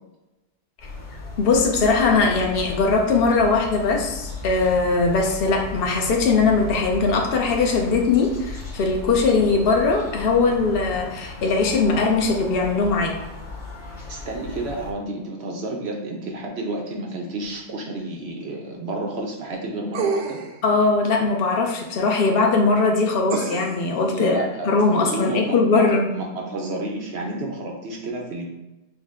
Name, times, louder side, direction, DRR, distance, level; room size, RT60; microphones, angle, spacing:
sound 1, 0.8-14.9, left 3 dB, 30° left, 1.1 m, -36 dB
voice 1, 1.4-13.2 20.6-26.1, left 4 dB, 55° left, 2 dB, 0.6 m, -20 dB
voice 2, 14.1-20.4 24.1-24.7 25.0-25.8 26.1-28.5, right 2 dB, 60° right, 0 dB, 0.7 m, -30 dB
sound 2, 19.9-20.6 23.3-23.9 24.8-24.9, right 5 dB, 85° right, 1.2 m, -27 dB
6.2 x 2.1 x 3.6 m, 1.0 s
omnidirectional pair, 1.7 m